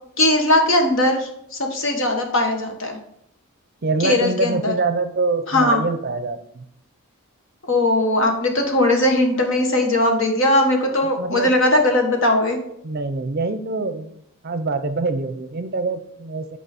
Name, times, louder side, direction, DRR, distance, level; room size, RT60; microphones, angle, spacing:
voice 1, 0.2-3.0 4.0-4.7 5.5-5.8 7.7-12.6, left 1 dB, 60° left, 3 dB, 1.3 m, -19 dB
voice 2, 3.8-6.6 11.0-11.5 12.8-16.6, right 3 dB, 45° right, 10 dB, 0.6 m, -25 dB
7.9 x 4.8 x 4.2 m, 0.72 s
head